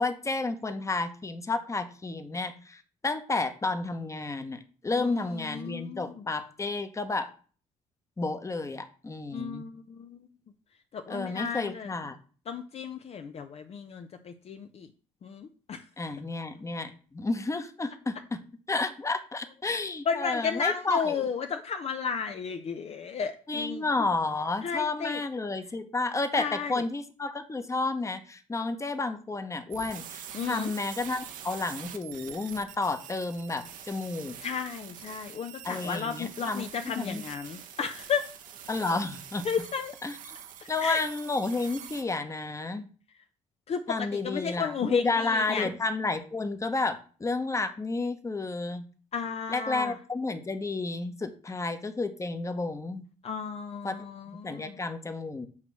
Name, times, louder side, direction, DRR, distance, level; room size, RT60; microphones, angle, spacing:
voice 1, 0.0-7.3 8.2-9.7 11.1-12.2 16.0-18.4 18.7-21.3 23.5-34.3 35.6-36.7 37.0-37.2 38.7-39.4 40.0-40.4 40.7-42.9 43.9-48.8 49.5-53.1 53.8-53.9 54.4-55.5, left 3 dB, 20° left, 9 dB, 1.0 m, -31 dB
voice 2, 4.9-6.2 9.3-10.3 10.9-11.9 12.5-14.9 15.2-15.8 20.1-24.1 24.6-25.2 26.4-26.8 30.3-30.7 34.4-38.3 39.4-39.9 40.8-41.0 43.7-45.7 49.1-50.0 53.2-54.8, left 6 dB, 50° left, 7 dB, 0.6 m, -33 dB
sound 1, 29.7-42.0, right 9 dB, 75° right, 1.0 m, -45 dB
7.3 x 3.0 x 6.0 m, 0.40 s
supercardioid pair, 75°, 14 cm